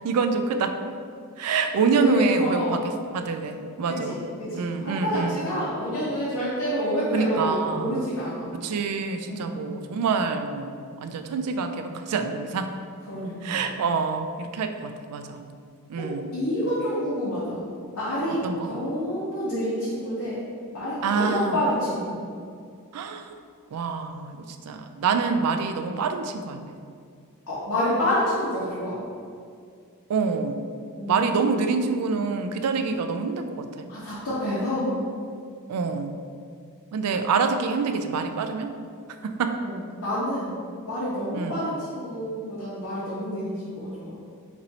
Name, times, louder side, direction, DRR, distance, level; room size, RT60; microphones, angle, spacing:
voice 1, 0.0-0.7 1.4-2.8 3.1-4.2 4.5-5.5 7.1-8.0 8.5-12.7 13.4-15.4 15.9-16.3 18.3-18.7 21.0-21.6 22.9-23.3 23.7-26.7 30.1-30.7 31.1-33.9 35.7-36.2 36.9-38.7 39.2-39.6 41.3-41.7, right 5 dB, 90° right, 7 dB, 0.4 m, -26 dB
voice 2, 1.4-2.8 3.9-8.6 9.3-9.5 13.1-13.7 16.0-17.6 18.0-20.4 20.7-22.2 27.5-29.0 30.9-31.6 32.2-32.3 33.9-34.9 39.6-40.5 40.8-44.2, equal, 85° left, -10 dB, 1.1 m, -28 dB
4.1 x 2.6 x 4.1 m, 2.3 s
head